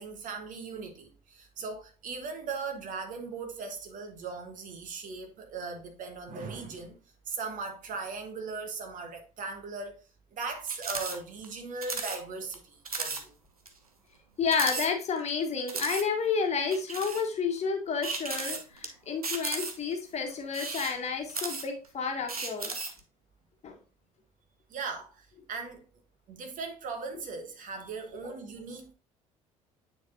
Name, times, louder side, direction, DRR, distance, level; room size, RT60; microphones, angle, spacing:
voice 1, 0.0-7.0 7.3-10.0 10.3-13.3 24.7-25.8 26.3-28.9, right 4 dB, 45° right, 1.3 m, -38 dB
sound 1, 10.7-11.2 11.4-11.5 11.8-12.2 12.5-12.6 12.8-13.2 13.7-13.8 14.5-15.3 15.7-16.0 16.7-17.3 18.0-18.9 19.2-19.9 20.4-21.9 22.3-23.0, right 4 dB, 90° right, 0.6 m, -35 dB
voice 2, 14.4-22.7 23.6-23.8, left 5 dB, 35° left, 1.4 m, -30 dB
9.1 x 4.0 x 2.7 m
figure-of-eight pair, 55°, 18 cm